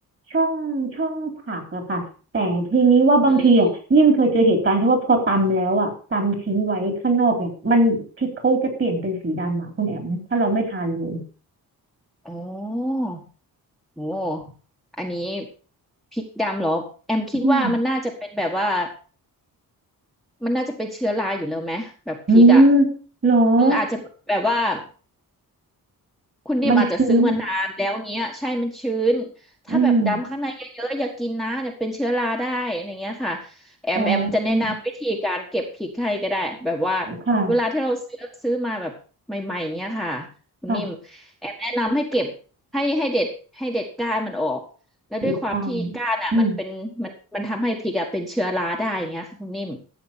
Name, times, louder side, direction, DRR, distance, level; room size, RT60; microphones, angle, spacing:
voice 1, 0.3-2.0 2.3-11.2 17.4-17.7 22.3-22.9 23.2-23.8 26.6-27.4 29.7-30.2 34.0-34.7 37.1-37.5 40.7-40.9 45.2-46.0 46.3-46.5, right 2 dB, 35° right, 4 dB, 3.8 m, -19 dB
voice 2, 12.2-13.2 14.0-14.4 15.0-15.4 16.1-18.9 20.4-22.6 23.6-24.8 26.4-29.3 29.7-37.1 37.5-38.9 39.3-40.3 40.6-42.3 42.7-44.6 45.1-49.8, equal, ahead, 1 dB, 1.5 m, -26 dB
13.5 x 7.9 x 5.7 m, 0.39 s
wide cardioid pair, 155°, 36 cm